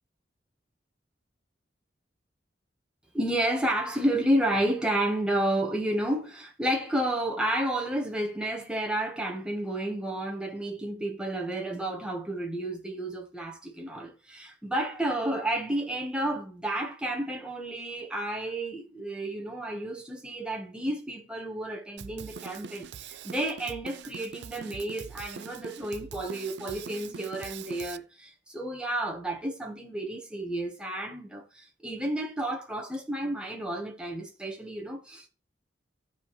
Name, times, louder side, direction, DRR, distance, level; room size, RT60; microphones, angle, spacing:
voice 1, 3.1-35.3, right 1 dB, 5° right, 1.5 m, -31 dB
Drum kit, 22.0-28.0, right 7 dB, 70° right, 0.4 m, -43 dB
15.0 x 5.0 x 3.3 m
head